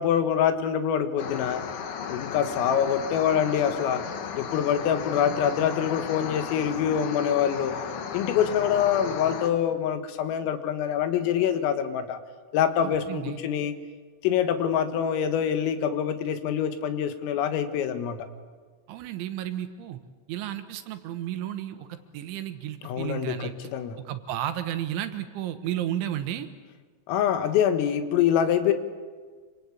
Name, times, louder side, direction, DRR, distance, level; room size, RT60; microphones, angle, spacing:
voice 1, 0.0-1.6 2.1-4.0 4.4-7.8 8.1-12.2 12.5-13.8 14.2-18.3 22.8-24.0 27.1-28.7, left 9 dB, 85° left, 9 dB, 4.2 m, -25 dB
sound 1, 1.2-9.5, left 7 dB, 60° left, 3.0 m, -35 dB
voice 2, 12.8-13.4 18.9-20.0 20.3-23.5 24.0-26.5, right 11 dB, 75° right, 9 dB, 3.4 m, -33 dB
27.0 x 25.5 x 8.6 m, 1.5 s
omnidirectional pair, 5.9 m